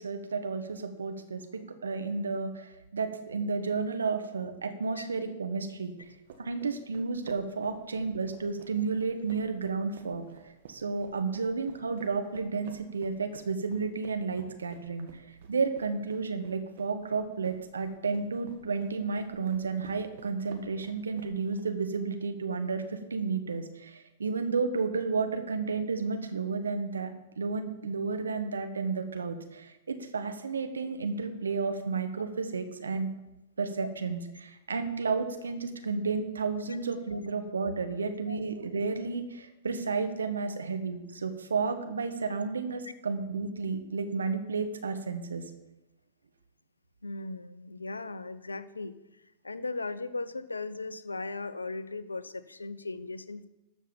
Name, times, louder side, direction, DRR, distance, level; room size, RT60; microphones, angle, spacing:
voice 1, 0.0-5.9 6.4-15.2 15.5-27.1 27.4-33.1 33.6-45.4, right 4 dB, 80° right, 7 dB, 1.3 m, -32 dB
sound 1, 6.0-21.7, right 6 dB, 60° right, 1.9 m, -53 dB
voice 2, 47.0-48.9 49.4-53.5, left 3 dB, 90° left, 14 dB, 0.7 m, -37 dB
13.0 x 5.4 x 7.1 m, 0.97 s
figure-of-eight pair, 105°, 0 cm